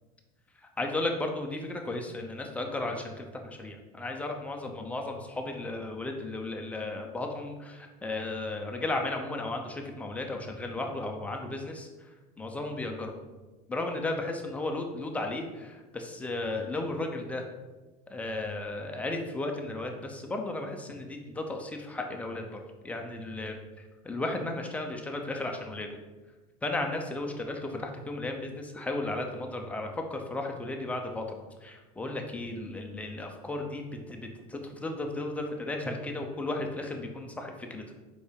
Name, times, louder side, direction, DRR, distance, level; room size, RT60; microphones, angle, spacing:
voice 1, 0.8-11.9 12.4-13.1 13.7-17.4 18.1-23.5 24.0-25.9 26.6-27.6 28.1-31.2 31.6-37.8, left 2 dB, 5° left, 2 dB, 0.6 m, -34 dB
5.0 x 4.7 x 5.1 m, 1.2 s
cardioid pair, 160°, 18 cm